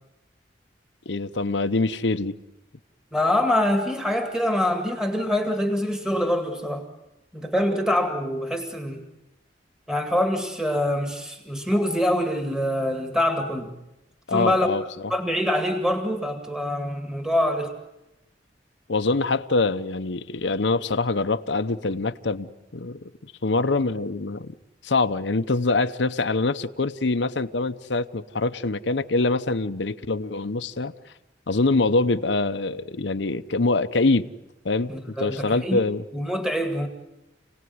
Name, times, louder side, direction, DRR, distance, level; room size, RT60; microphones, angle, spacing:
voice 1, 1.1-2.4 14.3-14.8 18.9-24.5 24.8-30.9 31.5-34.3 34.6-34.9 35.2-36.0, left 3 dB, 85° left, 0.9 m, -24 dB
voice 2, 3.1-6.8 7.3-9.0 9.9-13.7 14.3-14.7 15.1-17.7 34.9-35.8 36.1-36.9, left 1 dB, 5° right, 2.1 m, -25 dB
29.0 x 18.5 x 9.5 m
head